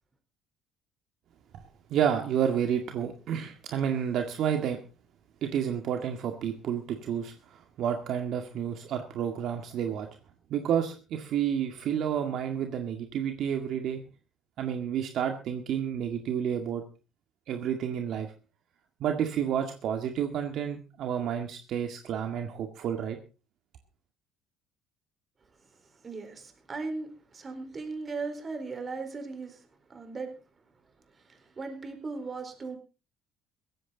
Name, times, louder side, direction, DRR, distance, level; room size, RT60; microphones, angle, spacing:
voice 1, 1.9-4.8 5.4-10.1 10.5-14.0 14.6-16.8 17.5-18.3 19.0-23.2, right 8 dB, 60° right, 5 dB, 2.0 m, -30 dB
voice 2, 25.6-30.3 31.1-32.8, right 4 dB, 30° right, 6 dB, 4.3 m, -38 dB
16.5 x 14.5 x 4.0 m, 0.34 s
cardioid pair, 120°, 0 cm